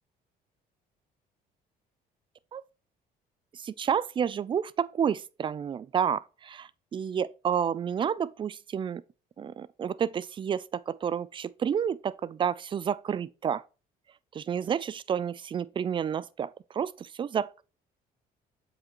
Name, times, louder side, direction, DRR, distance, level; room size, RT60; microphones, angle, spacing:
voice 1, 3.5-9.0 9.4-13.6 14.3-17.6, right 8 dB, 30° right, 0.3 m, -30 dB
7.2 x 5.0 x 3.0 m
cardioid pair, 110°, 17 cm